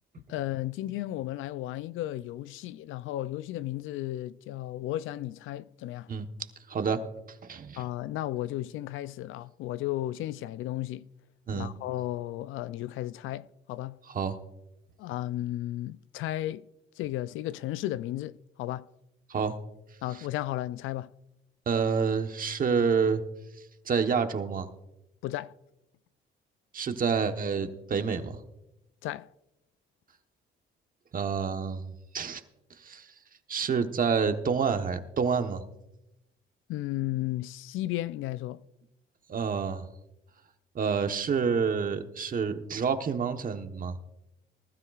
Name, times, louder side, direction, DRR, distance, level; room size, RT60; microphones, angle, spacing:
voice 1, 0.3-6.1 7.8-11.1 11.5-14.0 15.0-16.7 17.0-18.9 20.0-21.1 25.2-25.5 29.0-29.3 36.7-38.6, left 14 dB, 85° left, 0.4 m, -34 dB
voice 2, 6.7-7.0 7.4-7.8 11.5-11.7 14.1-14.4 19.3-19.6 20.1-20.2 21.7-23.2 23.9-24.7 26.7-28.4 31.1-32.4 32.8-33.1 33.5-35.6 39.3-39.9 40.7-43.9, right 6 dB, 45° right, 1.1 m, -28 dB
20.0 x 12.5 x 2.4 m
cardioid pair, 90°, 20 cm